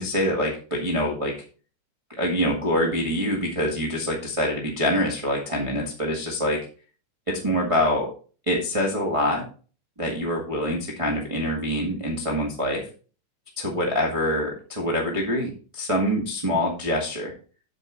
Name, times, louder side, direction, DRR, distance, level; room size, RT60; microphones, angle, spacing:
voice 1, 0.0-1.3 2.2-6.6 7.3-8.1 8.5-9.4 10.0-12.9 13.6-17.3, equal, 20° right, -3 dB, 0.8 m, -25 dB
8.3 x 7.6 x 3.9 m, 0.38 s
omnidirectional pair, 3.7 m